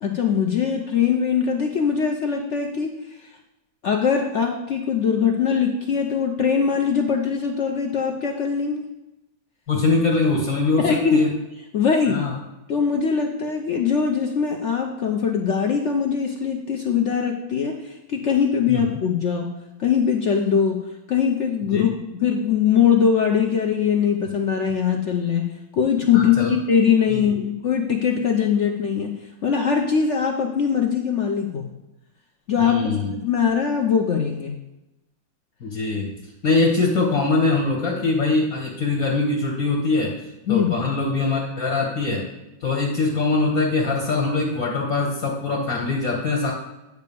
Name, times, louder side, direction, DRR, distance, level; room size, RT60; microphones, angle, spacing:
voice 1, 0.0-3.2 3.8-8.8 10.8-11.2 11.7-12.2 12.7-19.5 19.8-20.8 21.1-25.4 25.7-29.1 29.4-31.7 32.5-34.5 40.5-40.7, left 7 dB, 70° left, 2 dB, 0.7 m, -21 dB
voice 2, 9.7-11.3 12.1-12.4 18.7-18.8 21.7-21.8 26.1-26.5 27.1-27.4 32.6-33.1 35.6-36.1 36.4-40.1 40.5-42.2 42.6-46.5, left 3 dB, 50° left, -2 dB, 1.5 m, -22 dB
9.4 x 3.3 x 6.8 m, 0.97 s
omnidirectional pair, 2.0 m